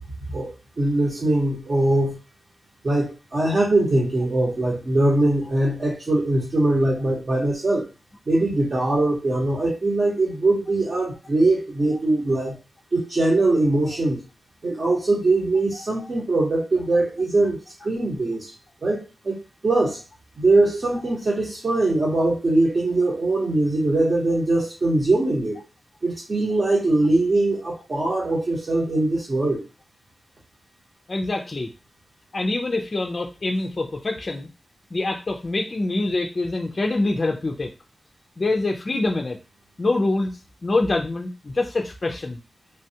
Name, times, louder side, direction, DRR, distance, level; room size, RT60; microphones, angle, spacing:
voice 1, 0.3-2.2 2.8-7.9 8.3-12.6 12.9-14.2 14.6-18.5 18.8-20.0 20.4-25.6 26.0-29.6, right 2 dB, 45° right, -4 dB, 0.9 m, -22 dB
voice 2, 31.1-31.7 32.3-34.5 34.9-37.7 38.4-39.4 39.8-42.4, left 2 dB, 35° left, 2 dB, 0.3 m, -25 dB
3.2 x 2.3 x 2.7 m, 0.28 s
wide cardioid pair, 145°, 0 cm